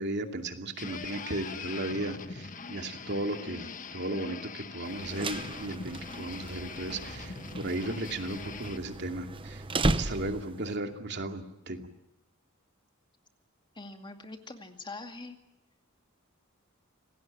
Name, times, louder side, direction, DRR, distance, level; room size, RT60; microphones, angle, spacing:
voice 1, 0.0-9.6 9.9-11.9, right 2 dB, 55° right, 5 dB, 2.5 m, -35 dB
sound 1, 0.8-8.8, left 5 dB, 40° left, 1.2 m, -42 dB
sound 2, 4.9-10.7, right 2 dB, 25° right, 0.9 m, -35 dB
voice 2, 13.8-15.4, left 3 dB, 25° left, 5 dB, 2.3 m, -43 dB
26.5 x 18.5 x 9.0 m, 0.91 s
head